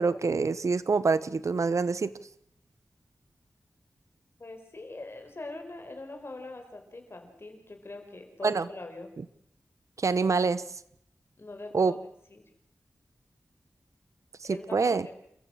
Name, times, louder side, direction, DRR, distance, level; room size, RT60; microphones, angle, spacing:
voice 1, 0.0-2.1 8.4-8.7 10.0-10.6 11.7-11.9 14.4-15.0, right 4 dB, 70° right, 16 dB, 1.0 m, -26 dB
voice 2, 4.4-9.1 11.4-12.0 12.3-12.4 14.4-15.2, left 2 dB, 45° left, 5 dB, 4.8 m, -42 dB
29.0 x 15.0 x 6.5 m, 0.71 s
wide cardioid pair, 65°, 6 cm